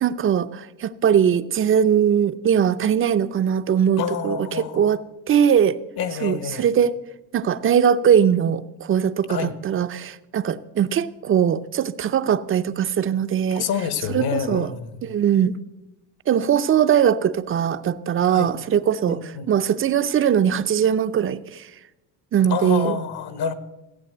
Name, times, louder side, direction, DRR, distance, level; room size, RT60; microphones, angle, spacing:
voice 1, 0.0-5.0 5.3-5.8 6.2-6.9 7.3-13.7 14.1-14.7 15.0-15.6 16.3-21.7 22.3-23.0, right 8 dB, 30° right, 0.5 m, -20 dB
voice 2, 4.0-4.9 6.0-6.6 9.3-9.5 13.5-15.0 18.3-18.5 19.1-19.5 22.5-23.5, left 7 dB, 55° left, 1.4 m, -28 dB
16.0 x 8.5 x 7.8 m
cardioid pair, 135°, 46 cm